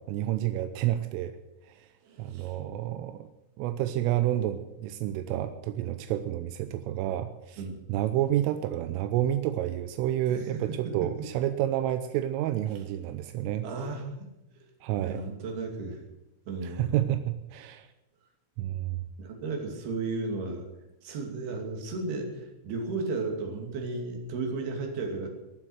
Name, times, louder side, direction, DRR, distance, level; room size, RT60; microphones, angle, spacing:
voice 1, 0.1-1.4 1.7-1.9 2.2-3.3 3.6-7.6 7.9-13.6 14.8-15.2 16.8-17.9 18.6-19.0, right 12 dB, 85° right, 9 dB, 3.3 m, -29 dB
voice 2, 2.0-2.6 7.6-7.8 10.3-11.1 13.6-14.1 14.5-14.7 15.0-16.0 16.5-17.0 19.2-20.7 21.0-25.3, right 3 dB, 60° right, 2 dB, 4.3 m, -34 dB
22.5 x 7.6 x 7.9 m, 0.94 s
omnidirectional pair, 5.7 m